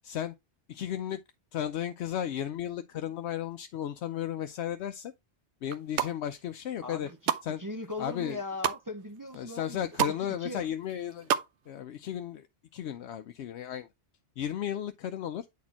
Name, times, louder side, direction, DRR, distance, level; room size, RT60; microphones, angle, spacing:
voice 1, 0.0-0.3 0.7-1.2 1.5-5.1 5.6-7.1 7.4-7.6 8.0-8.4 9.4-11.3 11.7-12.5 12.7-13.9 14.4-15.5, left 10 dB, 75° left, 0.9 m, -34 dB
sound 1, 5.6-6.1 6.7-7.5 7.9-8.8 9.3-9.4 9.6-10.2 10.5-11.5 11.8-11.9, right 10 dB, 85° right, 0.9 m, -30 dB
voice 2, 6.8-7.3 7.6-10.7, left 2 dB, 20° right, 0.6 m, -39 dB
9.4 x 4.2 x 2.9 m
omnidirectional pair, 1.2 m